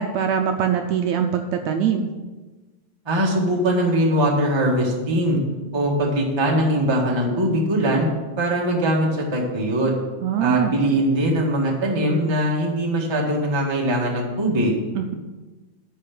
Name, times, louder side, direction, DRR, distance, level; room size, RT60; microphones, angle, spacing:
voice 1, 0.0-2.1 10.2-10.7 15.0-15.1, right 8 dB, 75° right, 5 dB, 1.7 m, -22 dB
voice 2, 3.0-5.4 5.7-8.1 8.4-9.9 10.4-14.8, right 1 dB, 15° right, -2 dB, 0.9 m, -21 dB
10.5 x 4.8 x 7.6 m, 1.2 s
omnidirectional pair, 3.5 m